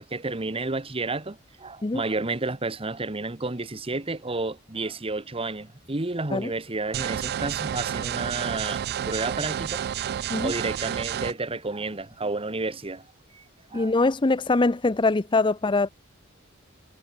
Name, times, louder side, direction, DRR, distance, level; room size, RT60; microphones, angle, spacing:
voice 1, 0.0-9.8 10.4-13.9, right 3 dB, 25° right, 1.3 m, -31 dB
sound 1, 6.9-11.3, right 9 dB, 50° right, 0.3 m, -30 dB
voice 2, 13.7-15.9, left 3 dB, 25° left, 0.6 m, -23 dB
head